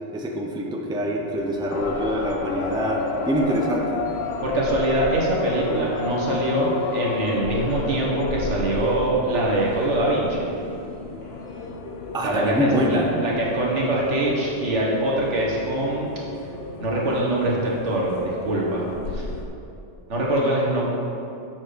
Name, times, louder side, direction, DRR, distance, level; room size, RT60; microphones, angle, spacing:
voice 1, 0.1-4.1 12.1-13.1, equal, 5° right, -1 dB, 0.6 m, -25 dB
sound 1, 1.4-11.7, left 2 dB, 80° left, 2.1 m, -44 dB
sound 2, 1.7-19.5, left 3 dB, 65° left, 0.9 m, -32 dB
voice 2, 4.4-10.5 12.2-16.1 16.8-18.9 19.1-19.3 20.1-20.9, right 1 dB, 80° right, -3 dB, 1.8 m, -23 dB
7.4 x 6.1 x 5.1 m, 2.7 s
omnidirectional pair, 1.2 m